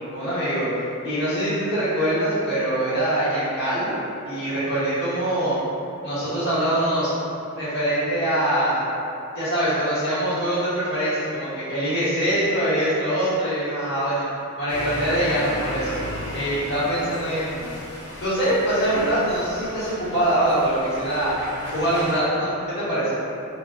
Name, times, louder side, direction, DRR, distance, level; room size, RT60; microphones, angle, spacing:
voice 1, 0.1-0.7 1.0-3.9 4.2-5.6 6.0-7.1 7.5-8.8 9.3-14.3 14.6-16.0 16.3-17.7 18.2-21.3 21.7-23.1, right 1 dB, 50° left, -13 dB, 1.1 m, -23 dB
sound 1, 14.7-22.1, left 1 dB, 90° left, 0.8 m, -35 dB
2.3 x 2.3 x 2.3 m, 2.7 s
head